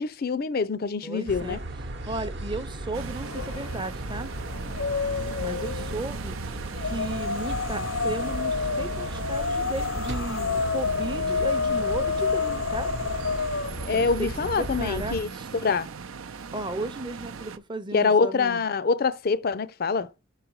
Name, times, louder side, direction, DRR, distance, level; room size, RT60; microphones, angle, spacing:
voice 1, 0.0-1.6 13.9-15.3 15.6-15.9 17.9-20.1, left 4 dB, 45° left, 0.4 m, -25 dB
voice 2, 1.0-1.6 2.1-4.3 5.4-6.3 6.8-12.9 13.9-15.5 16.5-18.6, right 2 dB, 20° right, 0.6 m, -35 dB
sound 1, 1.3-15.2, right 1 dB, 55° right, 0.9 m, -36 dB
sound 2, 2.9-17.6, right 5 dB, 85° right, 0.6 m, -40 dB
sound 3, 3.2-3.8 4.1-6.0 6.7-13.9, left 5 dB, 80° left, 0.7 m, -29 dB
5.7 x 4.9 x 4.7 m
head